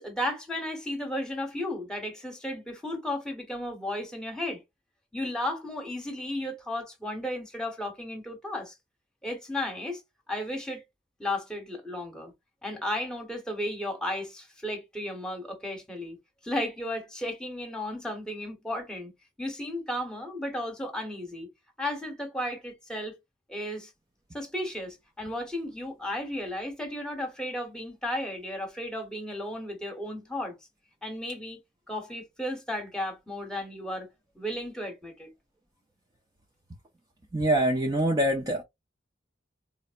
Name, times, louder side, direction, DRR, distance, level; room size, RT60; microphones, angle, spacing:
voice 1, 0.0-4.6 5.1-8.7 9.2-10.0 10.3-10.8 11.2-12.3 12.6-16.2 16.4-19.1 19.4-21.5 21.8-23.1 23.5-23.9 24.3-30.5 31.0-31.6 31.9-34.1 34.3-35.3, left 1 dB, 5° left, 1.1 m, -34 dB
voice 2, 37.3-38.6, right 1 dB, 20° right, 0.5 m, -24 dB
4.1 x 2.0 x 2.4 m
head